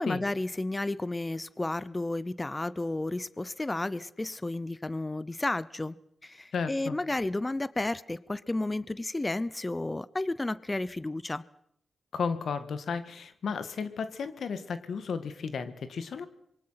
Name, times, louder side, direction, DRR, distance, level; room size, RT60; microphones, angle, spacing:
voice 1, 0.0-6.0 6.2-11.4, left 2 dB, 25° left, 18 dB, 0.8 m, -32 dB
voice 2, 6.5-7.0 12.1-16.3, left 5 dB, 80° left, 11 dB, 1.9 m, -33 dB
26.0 x 23.0 x 5.9 m, 0.73 s
cardioid pair, 50°, 0 cm